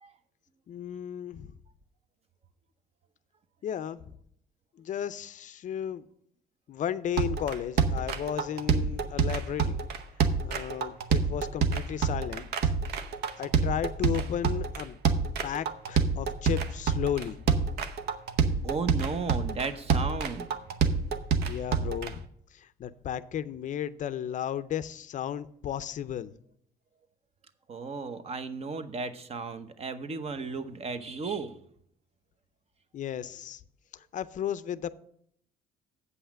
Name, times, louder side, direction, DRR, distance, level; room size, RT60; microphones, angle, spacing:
voice 1, 0.7-1.6 3.6-4.2 4.8-6.1 6.7-9.8 10.4-12.7 13.4-15.0 15.4-17.4 21.5-22.2 22.5-26.3 32.9-33.6 33.9-34.9, left 9 dB, 50° left, 0.5 m, -34 dB
sound 1, 7.2-22.1, right 5 dB, 70° right, 0.9 m, -27 dB
voice 2, 18.6-20.5 27.7-31.6, right 4 dB, 35° right, 0.9 m, -34 dB
8.1 x 5.6 x 7.3 m
cardioid pair, 110°, 17 cm